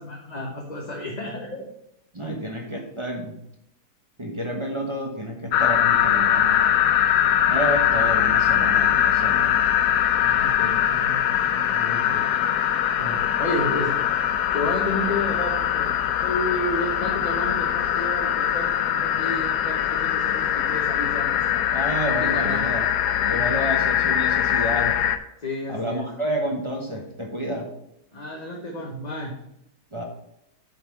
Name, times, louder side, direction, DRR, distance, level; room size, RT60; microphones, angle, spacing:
voice 1, 0.0-1.7 10.2-12.2 13.0-14.0 14.5-15.9 16.2-21.6 22.1-22.7 23.3-23.6 25.4-26.1 28.1-29.3, left 1 dB, 30° left, 0 dB, 1.1 m, -31 dB
voice 2, 2.1-3.4 4.2-6.6 7.5-9.6 21.7-22.8 23.2-25.0 25.7-27.7 29.9-30.0, equal, 20° right, 0 dB, 1.0 m, -29 dB
sound 1, 5.5-25.2, left 10 dB, 90° left, 1.2 m, -22 dB
8.3 x 4.3 x 7.0 m, 0.80 s
omnidirectional pair, 1.7 m